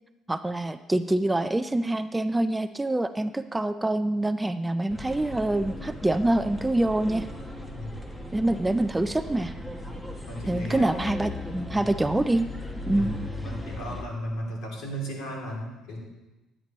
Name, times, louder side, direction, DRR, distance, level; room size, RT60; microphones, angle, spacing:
voice 1, 0.3-7.3 8.3-9.5 10.5-12.5 12.9-13.1, right 1 dB, 10° right, 11 dB, 0.4 m, -25 dB
sound 1, 4.9-14.0, left 1 dB, 10° left, 1.1 m, -37 dB
voice 2, 10.2-11.0 11.7-11.9 12.9-13.1 13.4-16.0, equal, 75° left, -2 dB, 2.9 m, -35 dB
11.0 x 8.8 x 3.1 m, 1.1 s
cardioid pair, 100°, 0 cm